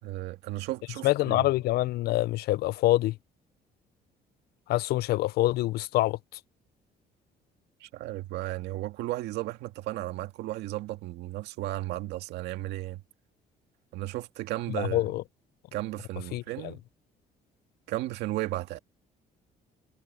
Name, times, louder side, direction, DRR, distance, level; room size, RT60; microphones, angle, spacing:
voice 1, 0.0-1.4 7.8-13.0 13.9-15.1 15.7-16.8 17.9-18.8, right 16 dB, 90° right, 2.1 m, -34 dB
voice 2, 1.0-3.2 4.7-6.2 14.7-15.2 16.3-16.4, left 16 dB, 70° left, 0.4 m, -25 dB
cardioid pair, 110°, 17 cm